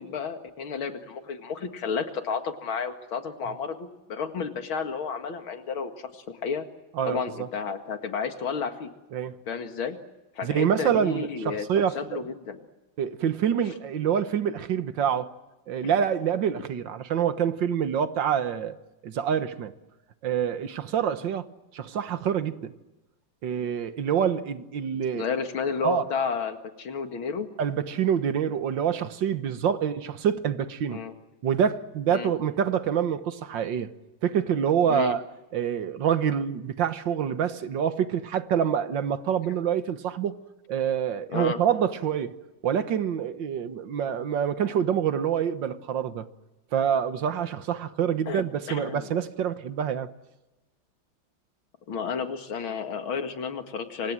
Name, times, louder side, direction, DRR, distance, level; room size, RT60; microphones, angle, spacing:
voice 1, 0.0-6.7 7.1-8.9 9.5-10.0 10.4-11.7 11.9-12.6 15.8-15.9 25.1-27.5 30.9-31.1 32.1-32.3 34.9-35.2 41.3-41.6 48.3-48.4 48.7-49.1 51.9-54.1, left 6 dB, 90° left, 2.8 m, -32 dB
voice 2, 7.0-7.5 9.1-9.4 10.4-12.2 13.0-15.3 15.7-18.8 19.0-19.7 20.2-21.5 21.7-22.7 23.4-25.3 25.8-26.0 27.6-31.0 31.4-33.9 34.2-35.2 35.5-40.3 40.7-42.4 42.6-46.3 46.7-50.1, right 8 dB, 70° right, 1.8 m, -26 dB
27.5 x 25.5 x 7.5 m
omnidirectional pair, 2.2 m